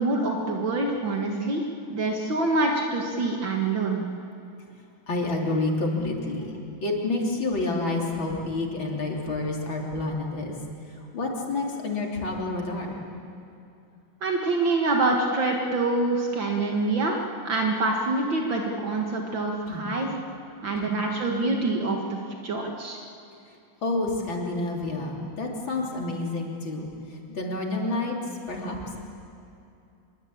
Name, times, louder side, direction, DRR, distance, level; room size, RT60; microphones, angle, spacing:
voice 1, 0.0-1.6 1.9-4.0 14.2-17.2 17.4-20.2 20.6-22.2 22.4-23.0, right 2 dB, 65° right, 1 dB, 2.5 m, -25 dB
voice 2, 5.1-10.6 10.9-13.0 19.7-19.9 20.8-20.9 23.8-28.2 28.5-28.8, left 2 dB, 70° left, -1 dB, 4.1 m, -29 dB
25.5 x 22.5 x 8.7 m, 2.6 s
omnidirectional pair, 2.3 m